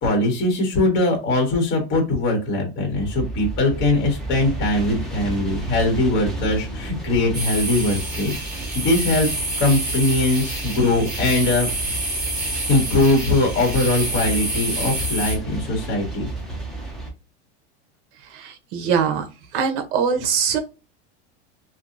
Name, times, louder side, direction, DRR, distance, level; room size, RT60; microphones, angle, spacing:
voice 1, 0.0-8.4 8.7-9.3 9.6-11.7 12.7-16.3, left 2 dB, 35° left, 1 dB, 1.1 m, -21 dB
sound 1, 2.9-17.1, right 2 dB, ahead, 0.5 m, -32 dB
sound 2, 7.3-15.4, right 2 dB, 25° right, 1.2 m, -28 dB
voice 2, 18.2-19.3 19.5-20.6, right 7 dB, 55° right, 7 dB, 0.8 m, -22 dB
2.7 x 2.2 x 2.4 m, 0.30 s
supercardioid pair, 150°, 33 cm